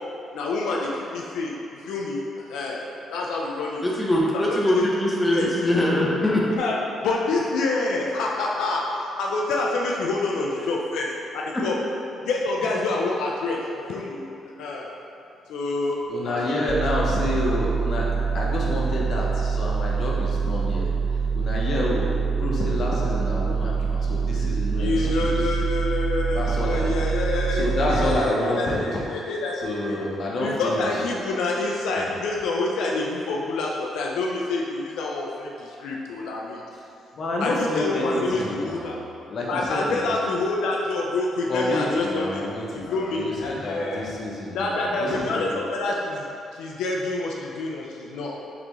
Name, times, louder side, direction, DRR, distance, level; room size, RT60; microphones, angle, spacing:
voice 1, 0.3-1.5 1.8-2.2 2.5-2.8 3.1-3.8 4.3-4.8 5.3-5.5 6.6-6.8 7.0-8.8 9.2-11.1 11.3-11.8 12.3-13.6 13.9-14.3 14.6-14.9 15.5-16.0 16.2-16.6 24.8-27.6 27.9-29.5 29.9-30.0 30.4-36.6 37.4-39.0 39.5-42.4 42.9-44.1 44.5-46.3 46.5-48.4, left 3 dB, 85° left, -2 dB, 0.4 m, -27 dB
voice 2, 3.8-6.5, left 1 dB, 10° left, -4 dB, 0.7 m, -22 dB
voice 3, 16.1-18.1 18.3-20.9 21.3-22.1 22.4-25.6 26.3-26.9 27.5-29.0 29.5-31.0 31.9-32.1 37.1-39.0 39.3-40.2 41.5-45.5, left 1 dB, 55° left, -4 dB, 0.8 m, -28 dB
sound 1, 16.7-28.1, right 5 dB, 35° right, 0.4 m, -25 dB
3.9 x 3.4 x 3.1 m, 2.7 s
cardioid pair, 90°, 0 cm